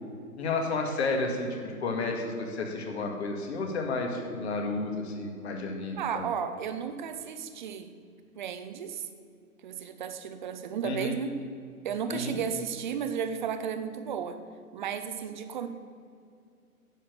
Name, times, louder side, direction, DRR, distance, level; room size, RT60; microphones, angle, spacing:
voice 1, 0.4-6.3 10.8-11.2 12.1-12.4, left 3 dB, 45° left, 3 dB, 2.2 m, -31 dB
voice 2, 6.0-7.9 8.4-9.1 9.6-11.4 11.8-14.4 14.7-15.7, right 7 dB, 30° right, 9 dB, 0.8 m, -34 dB
10.5 x 7.5 x 6.8 m, 2.4 s
figure-of-eight pair, 135°, 44 cm